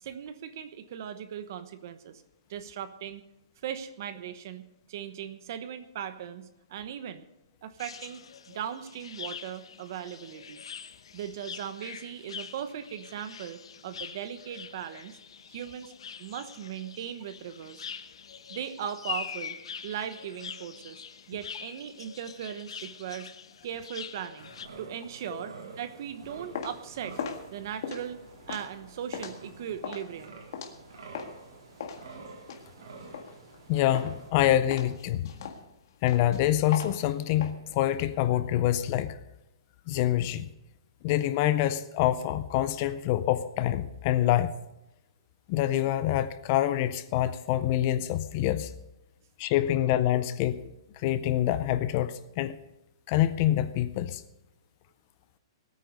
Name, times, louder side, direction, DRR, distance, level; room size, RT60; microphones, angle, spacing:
voice 1, 0.0-2.2 2.5-3.2 3.6-7.2 7.6-10.6 11.1-15.2 15.5-15.9 16.2-17.9 18.5-19.6 19.8-21.0 21.3-23.3 23.6-24.5 24.8-27.2 27.5-28.2 28.5-30.4, right 9 dB, 40° right, 12 dB, 1.0 m, -38 dB
sound 1, 7.8-24.7, left 7 dB, 85° left, 1.2 m, -44 dB
sound 2, 24.4-34.3, right 4 dB, 65° right, 3.6 m, -48 dB
sound 3, 26.2-31.4 31.8-33.6 33.9-34.3 34.7-37.5, left 7 dB, 45° left, 1.7 m, -39 dB
voice 2, 33.7-35.3 36.0-39.2 39.9-40.5 41.0-44.6 45.5-48.7 49.4-50.6 51.0-52.6 53.1-54.2, left 13 dB, 25° left, 13 dB, 0.4 m, -26 dB
19.5 x 9.2 x 5.2 m, 0.94 s
hypercardioid pair, 175°, 3 cm